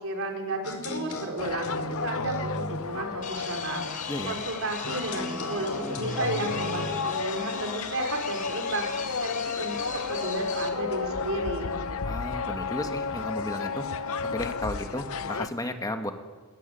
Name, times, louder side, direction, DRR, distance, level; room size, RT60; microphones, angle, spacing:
voice 1, 0.0-11.8, right 2 dB, 65° right, 3 dB, 4.9 m, -33 dB
sound 1, 0.6-2.9 4.8-7.1, left 1 dB, 85° left, 4.6 m, -34 dB
sound 2, 1.4-15.5, left 5 dB, 70° left, 0.8 m, -33 dB
sound 3, 3.2-10.7, left 6 dB, 40° left, 3.4 m, -39 dB
voice 2, 12.0-13.9 14.3-16.1, left 1 dB, 15° left, 5 dB, 1.9 m, -33 dB
21.5 x 21.5 x 9.4 m, 1.4 s
head